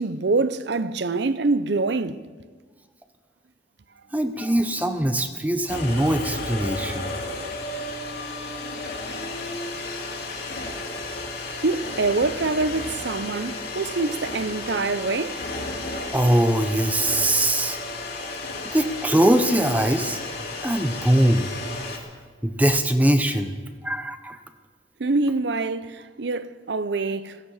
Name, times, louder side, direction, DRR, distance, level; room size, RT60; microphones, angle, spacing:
voice 1, 0.0-2.2 11.6-15.4 25.0-27.4, right 3 dB, 60° right, 0.6 m, -25 dB
voice 2, 4.1-7.1 16.1-17.8 18.7-20.2 20.6-21.5 22.4-23.5 23.8-24.4, right 1 dB, 10° right, 0.8 m, -21 dB
sound 1, 5.7-22.0, left 2 dB, 55° left, 2.7 m, -33 dB
16.5 x 15.5 x 5.7 m
head